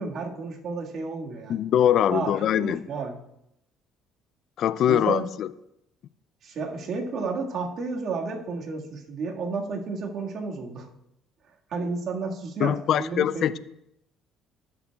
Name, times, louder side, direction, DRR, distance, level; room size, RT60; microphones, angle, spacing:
voice 1, 0.0-1.6 2.1-2.3 2.6-3.2 4.9-5.2 6.4-10.9 11.7-13.6, right 4 dB, 60° right, -1 dB, 1.8 m, -32 dB
voice 2, 1.5-2.8 4.6-5.5 12.6-13.6, left 10 dB, 60° left, 15 dB, 0.4 m, -23 dB
16.5 x 6.9 x 2.4 m, 0.80 s
supercardioid pair, 80°, 0 cm